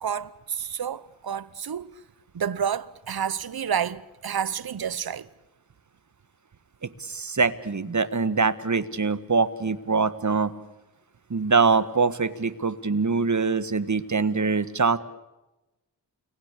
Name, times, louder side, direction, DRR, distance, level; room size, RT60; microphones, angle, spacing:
voice 1, 0.0-1.9 2.3-5.3, right 8 dB, 60° right, 1.1 m, -29 dB
voice 2, 7.0-10.5 11.3-15.0, right 4 dB, 45° right, 1.7 m, -23 dB
29.5 x 20.5 x 8.4 m
cardioid pair, 50°, 41 cm